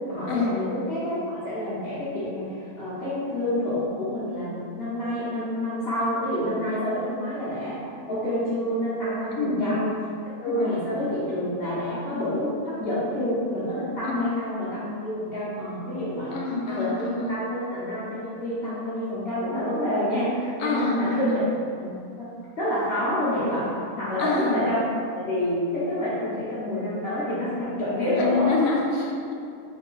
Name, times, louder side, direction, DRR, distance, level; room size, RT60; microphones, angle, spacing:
voice 1, 0.1-7.8 8.0-9.9 10.4-16.4 16.7-21.4 21.8-22.3 22.6-28.7, left 1 dB, 50° left, -13 dB, 1.2 m, -28 dB
voice 2, 9.4-9.8 10.4-10.8 14.0-14.4 16.3-17.4 20.6-21.5 24.2-24.6 28.2-29.4, left 4 dB, 80° left, -1 dB, 1.1 m, -27 dB
3.5 x 2.9 x 3.8 m, 2.4 s
omnidirectional pair, 1.4 m